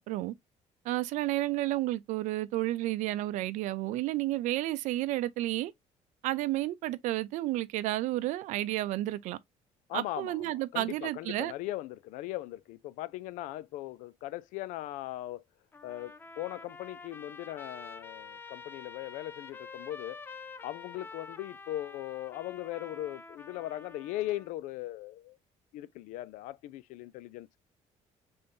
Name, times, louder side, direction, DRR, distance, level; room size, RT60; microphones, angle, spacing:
voice 1, 0.8-5.7 6.2-9.4 9.9-11.5, right 16 dB, 75° right, 0.5 m, -31 dB
voice 2, 9.9-15.4 15.8-20.2 20.6-25.4 25.7-27.6, left 15 dB, 90° left, 0.4 m, -39 dB
Trumpet, 15.7-24.5, left 4 dB, 15° left, 0.4 m, -48 dB
5.3 x 3.5 x 2.6 m
cardioid pair, 170°, 13 cm